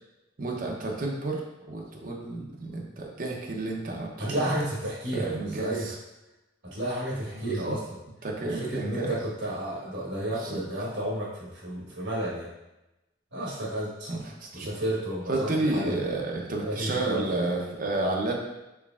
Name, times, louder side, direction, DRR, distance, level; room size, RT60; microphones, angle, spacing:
voice 1, 0.4-4.5 5.1-6.0 7.3-7.8 8.2-9.2 10.3-10.6 14.1-14.7 15.3-18.3, right 2 dB, 45° right, -1 dB, 0.7 m, -31 dB
voice 2, 4.2-5.9 6.6-7.8 8.4-12.5 13.3-14.1 14.5-15.9 16.6-17.3, right 1 dB, 75° right, -4 dB, 1.3 m, -32 dB
4.6 x 3.2 x 2.4 m, 0.98 s
head